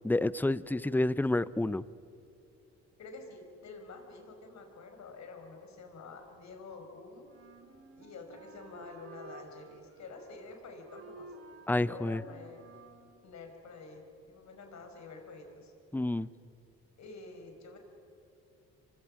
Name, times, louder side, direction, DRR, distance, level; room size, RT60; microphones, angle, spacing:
voice 1, 0.0-1.8 11.7-12.2 15.9-16.3, left 2 dB, 5° left, 17 dB, 0.6 m, -29 dB
voice 2, 3.0-7.4 8.0-11.3 11.7-12.6 13.2-15.7 17.0-17.8, left 3 dB, 65° left, 4 dB, 5.1 m, -48 dB
Wind instrument woodwind instrument, 7.2-13.1, right 3 dB, 55° right, 3.1 m, -53 dB
29.5 x 24.5 x 6.4 m, 2.7 s
cardioid pair, 90°, 30 cm